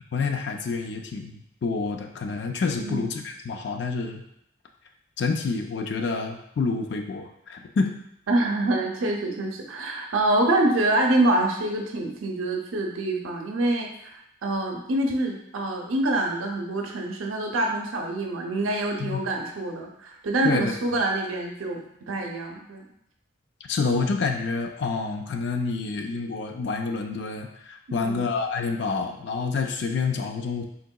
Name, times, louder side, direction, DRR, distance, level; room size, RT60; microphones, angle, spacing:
voice 1, 0.0-4.2 5.2-8.0 19.0-19.2 20.4-20.7 23.7-30.6, left 4 dB, 55° left, 4 dB, 0.4 m, -28 dB
voice 2, 2.8-3.1 8.3-22.9 27.9-28.3, right 2 dB, 90° right, 1 dB, 0.6 m, -26 dB
3.9 x 3.6 x 2.2 m, 0.75 s
head